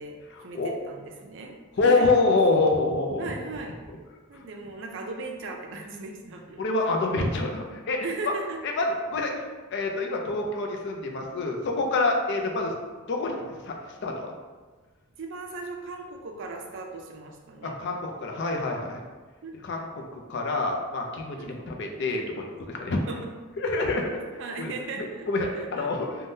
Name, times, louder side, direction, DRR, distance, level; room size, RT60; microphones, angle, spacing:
voice 1, 0.0-2.1 3.2-3.8 4.3-6.6 8.0-8.6 15.2-17.8 19.4-19.5 21.5-21.6 23.1-23.3 23.8-24.1 24.4-25.3 25.5-25.9, right 3 dB, 60° right, 2 dB, 0.4 m, -38 dB
voice 2, 1.8-3.3 6.6-8.1 8.8-9.4 9.7-12.7 13.1-13.7 14.0-14.3 17.6-19.0 19.6-23.0 23.6-24.0 24.3-24.7 25.0-26.1, left 3 dB, 55° left, 2 dB, 0.4 m, -26 dB
3.4 x 2.2 x 2.6 m, 1.4 s
head